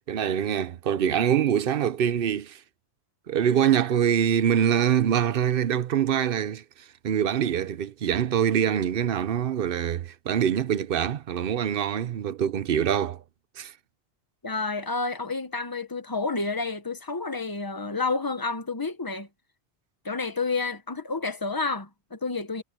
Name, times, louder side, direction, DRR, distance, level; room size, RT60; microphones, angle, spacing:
voice 1, 0.0-2.6 3.3-6.6 7.0-13.2 13.6-13.7, right 9 dB, 55° right, 0.9 m, -24 dB
voice 2, 14.4-19.3 20.0-22.6, left 3 dB, 20° left, 1.1 m, -30 dB
omnidirectional pair, 1.2 m